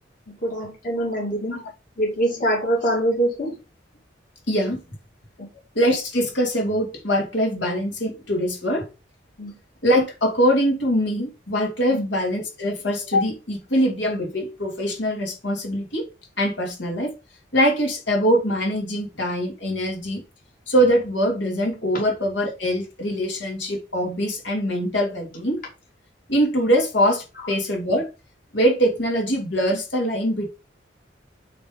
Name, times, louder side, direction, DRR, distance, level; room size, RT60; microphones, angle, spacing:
voice 1, 0.3-1.6 2.0-3.5 9.4-9.5 11.9-12.0 21.9-22.0, right 1 dB, 45° left, 2.3 m, -24 dB
voice 2, 4.5-4.8 5.7-8.9 9.8-16.1 16.4-17.1 17.5-20.2 20.7-25.6 26.3-28.1 28.5-30.5, equal, 75° left, 2.8 m, -23 dB
8.5 x 3.5 x 5.1 m
head